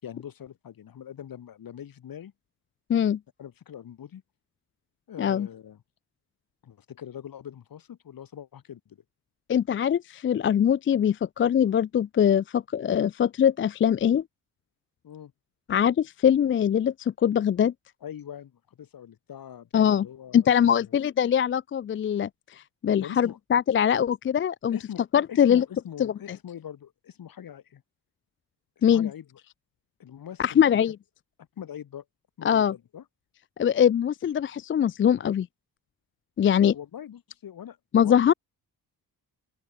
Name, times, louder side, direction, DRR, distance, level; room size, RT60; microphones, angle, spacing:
voice 1, 0.0-2.3 3.4-4.2 5.1-5.8 6.6-9.0 15.0-15.3 18.0-21.0 23.0-23.4 24.7-25.0 25.3-27.8 28.8-29.4 30.0-30.8 31.6-32.0 32.4-33.0 36.7-38.2, left 9 dB, 65° left, 6.4 m, -42 dB
voice 2, 9.5-14.2 15.7-17.7 19.7-20.1 20.3-24.8 25.1-25.6 26.0-26.1 28.8-29.1 30.4-30.9 32.4-32.7 33.6-35.5 36.4-36.7 37.9-38.3, left 9 dB, 35° left, 0.4 m, -22 dB
open air
cardioid pair, 110°, 37 cm